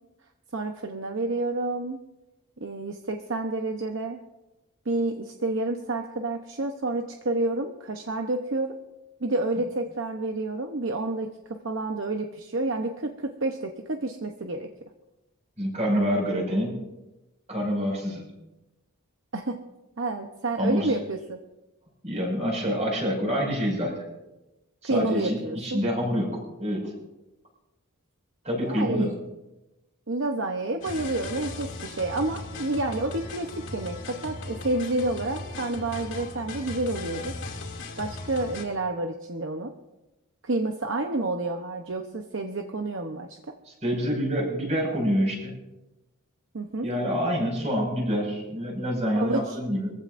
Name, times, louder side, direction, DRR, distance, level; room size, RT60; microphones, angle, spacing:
voice 1, 0.5-2.0 2.6-4.2 4.9-8.7 9.2-14.7 19.3-19.6 20.0-21.4 24.8-25.8 28.6-29.2 30.1-37.4 38.0-39.7 40.4-43.5 46.5-46.9 49.1-49.6, right 2 dB, 60° right, 4 dB, 0.9 m, -29 dB
voice 2, 15.6-16.8 17.5-18.2 20.6-20.9 22.0-24.0 24.8-26.9 28.4-29.1 43.6-45.5 46.8-49.9, equal, 30° right, -1 dB, 5.7 m, -27 dB
sound 1, 30.8-38.6, left 3 dB, 60° left, 2.6 m, -38 dB
24.0 x 15.5 x 2.6 m, 0.99 s
head